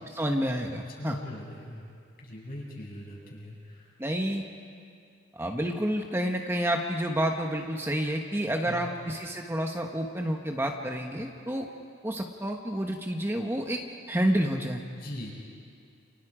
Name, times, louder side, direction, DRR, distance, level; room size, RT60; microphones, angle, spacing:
voice 1, 0.0-1.2 4.0-4.4 5.3-11.7 12.0-13.8 14.1-14.8, equal, 10° right, 2 dB, 1.1 m, -29 dB
voice 2, 1.0-1.8 2.2-3.9 8.6-8.9 14.9-15.3, equal, 45° left, -3 dB, 7.7 m, -40 dB
30.0 x 29.5 x 5.0 m, 2.3 s
head